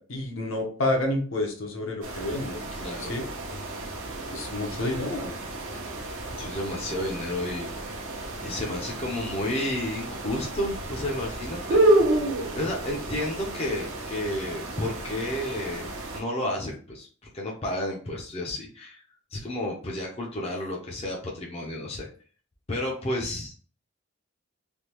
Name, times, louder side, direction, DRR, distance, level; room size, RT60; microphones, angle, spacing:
voice 1, 0.0-2.6 3.1-3.2 4.3-5.3, left 1 dB, 70° left, 2 dB, 0.8 m, -29 dB
sound 1, 2.0-16.2, right 1 dB, 65° right, 0.8 m, -30 dB
voice 2, 2.8-3.2 6.4-7.7 8.4-12.0 12.5-17.1 17.3-19.0 19.3-22.1 22.7-23.5, left 1 dB, 30° left, -2 dB, 0.5 m, -31 dB
3.4 x 2.2 x 2.9 m, 0.41 s
head